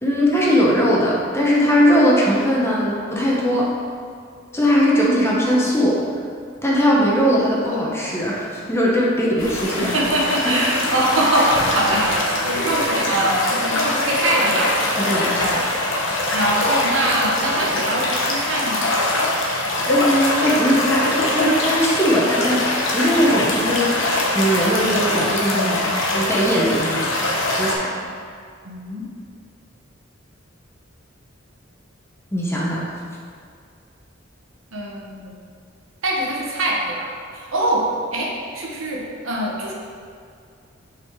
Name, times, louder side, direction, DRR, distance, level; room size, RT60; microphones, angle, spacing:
voice 1, 0.0-3.7 4.5-6.0 6.6-10.0 10.4-10.7 12.5-12.8 15.0-15.6 19.9-22.6 22.9-23.9 24.3-27.3 27.6-28.0 32.3-32.9, equal, 15° left, -4 dB, 1.0 m, -19 dB
sound 1, 9.4-27.7, left 2 dB, 70° left, 1.1 m, -22 dB
voice 2, 9.8-15.7 16.3-18.9 28.6-29.0 34.7-35.4 36.0-39.7, right 1 dB, 85° right, -2 dB, 1.2 m, -23 dB
5.9 x 4.2 x 4.6 m, 2.2 s
head